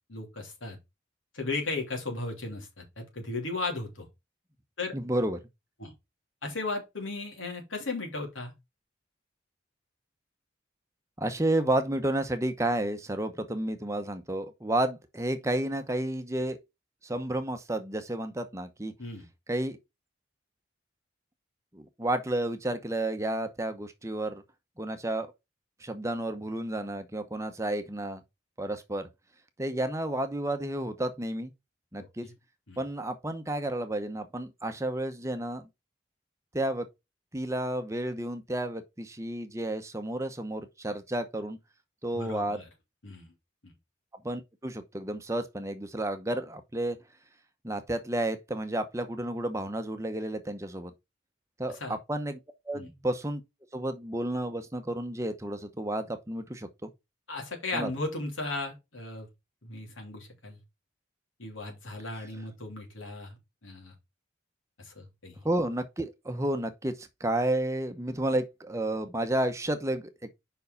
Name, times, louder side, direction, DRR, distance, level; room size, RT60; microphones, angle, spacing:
voice 1, 0.1-0.8 1.3-4.1 4.8-4.9 5.8-5.9 6.4-8.5 19.0-19.3 32.0-32.3 32.7-32.8 42.1-42.7 43.0-43.3 43.6-43.7 51.7-52.0 52.7-52.9 57.3-59.3 59.6-60.6 61.4-63.9 64.8-65.4, left 3 dB, 90° left, 2.9 m, -36 dB
voice 2, 4.9-5.4 11.2-16.6 17.0-18.9 19.5-19.8 21.7-24.4 24.8-25.3 25.8-28.2 28.6-29.1 29.6-31.5 31.9-32.3 32.8-35.7 36.5-36.9 37.3-41.6 42.0-42.6 44.2-47.0 47.6-50.9 51.6-52.4 52.7-53.4 53.7-56.9 57.7-57.9 65.4-70.3, right 1 dB, 15° right, 0.7 m, -31 dB
5.3 x 4.6 x 5.3 m
head